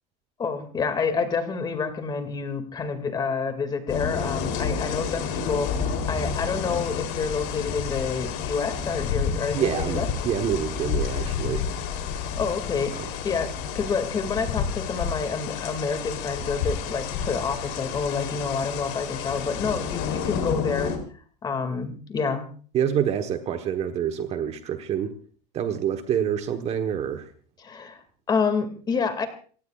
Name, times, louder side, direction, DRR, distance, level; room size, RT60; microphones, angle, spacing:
voice 1, 0.4-10.1 12.4-20.9 21.4-22.4 27.6-28.0 28.3-29.3, left 5 dB, 20° left, 8 dB, 2.3 m, -28 dB
sound 1, 3.9-21.0, left 6 dB, 55° left, 3.4 m, -30 dB
voice 2, 9.5-11.6 12.9-13.1 22.7-25.1 25.5-27.3, right 9 dB, 30° right, 7 dB, 1.2 m, -27 dB
27.5 x 16.0 x 2.4 m, 0.43 s
supercardioid pair, 150°, 21 cm